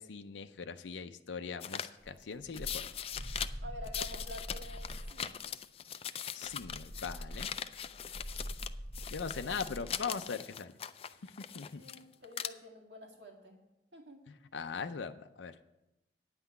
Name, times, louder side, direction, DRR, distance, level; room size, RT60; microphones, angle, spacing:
voice 1, 0.0-2.7 6.3-7.5 9.1-10.7 11.2-11.8 14.3-15.6, left 5 dB, 90° left, 8 dB, 0.5 m, -40 dB
sound 1, 1.6-1.9 2.5-3.5 3.8-8.7 8.9-12.0 12.2-12.5, left 9 dB, 35° left, 0.3 m, -41 dB
sound 2, 2.0-5.3 6.5-9.9, equal, 30° right, 1.2 m, -44 dB
voice 2, 3.6-5.4 11.8-13.6 13.9-14.2, left 1 dB, 75° right, 1 dB, 2.1 m, -48 dB
9.6 x 5.8 x 8.2 m, 0.94 s
head